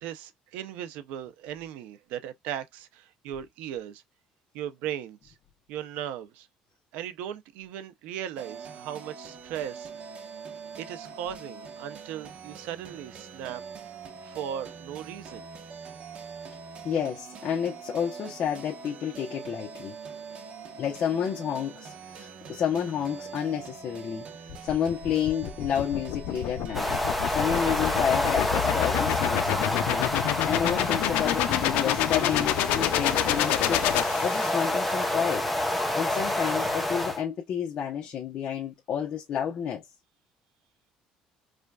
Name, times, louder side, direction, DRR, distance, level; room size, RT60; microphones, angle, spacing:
voice 1, 0.0-4.0 4.5-5.3 5.7-6.5 6.9-9.9 10.8-13.6 14.2-15.5, right 10 dB, 85° right, 0.6 m, -37 dB
sound 1, 8.4-28.1, right 6 dB, 45° right, 1.1 m, -43 dB
voice 2, 16.8-20.0 20.8-26.9 27.3-30.1 30.4-35.4 35.9-39.8, left 8 dB, 50° left, 1.0 m, -30 dB
sound 2, 24.5-34.8, left 13 dB, 85° left, 0.5 m, -28 dB
sound 3, 26.7-37.2, left 1 dB, ahead, 0.9 m, -28 dB
4.9 x 2.5 x 2.3 m
cardioid pair, 135°, 2 cm